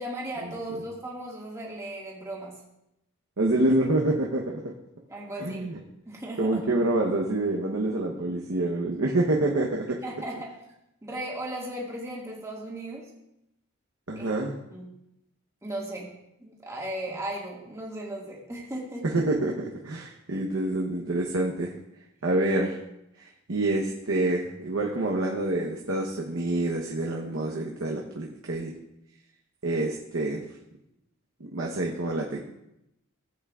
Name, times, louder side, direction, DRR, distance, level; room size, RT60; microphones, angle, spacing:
voice 1, 0.0-2.6 5.1-5.7 6.0-6.6 10.0-10.5 11.0-13.1 14.1-14.3 14.7-14.9 15.6-16.1 16.4-19.2, right 1 dB, 15° right, -3 dB, 1.8 m, -36 dB
voice 2, 3.4-4.6 5.4-5.7 6.4-10.0 14.1-14.5 19.1-19.5 19.8-21.7 22.2-22.8 23.2-28.7 29.6-30.4 31.4-32.4, right 2 dB, 65° right, -1 dB, 0.9 m, -27 dB
15.5 x 8.1 x 2.4 m, 0.84 s
head